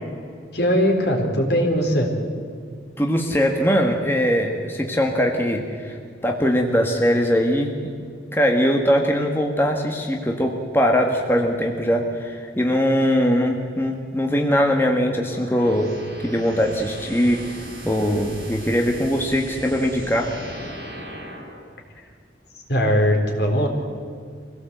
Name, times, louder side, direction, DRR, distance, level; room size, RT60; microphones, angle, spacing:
voice 1, 0.5-2.1 22.7-23.7, equal, 65° left, 2 dB, 3.7 m, -20 dB
voice 2, 3.0-6.0 6.2-7.8 8.3-15.9 16.2-20.3, equal, 15° left, 1 dB, 1.6 m, -21 dB
sound 1, 15.2-21.6, right 1 dB, 65° right, 6.7 m, -38 dB
24.5 x 16.5 x 8.0 m, 2.2 s
head